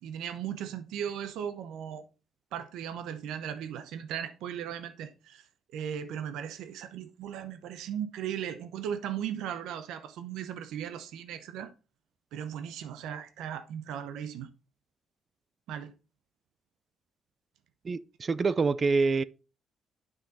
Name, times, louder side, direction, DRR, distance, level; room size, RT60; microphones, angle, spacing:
voice 1, 0.0-2.1 2.5-5.5 5.7-11.7 12.3-14.5 15.7-15.9, right 9 dB, 90° right, 0.8 m, -37 dB
voice 2, 17.8-19.2, right 4 dB, 40° right, 0.4 m, -26 dB
8.0 x 6.0 x 4.2 m
cardioid pair, 90°, 0 cm